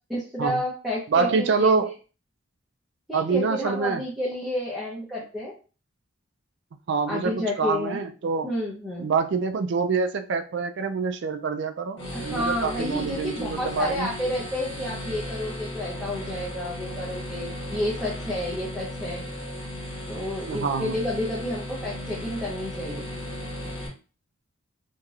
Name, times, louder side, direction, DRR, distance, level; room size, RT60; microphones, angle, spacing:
voice 1, 0.1-1.7 3.1-5.5 7.1-8.0 8.4-9.1 12.1-19.3 20.1-23.0, left 1 dB, ahead, -7 dB, 0.6 m, -30 dB
voice 2, 1.1-1.9 3.1-4.0 6.9-8.5 9.0-14.1 20.4-21.0, right 4 dB, 55° right, 8 dB, 0.3 m, -26 dB
sound 1, 12.0-23.9, left 1 dB, 60° left, 1.3 m, -36 dB
3.0 x 2.8 x 2.4 m, 0.35 s
head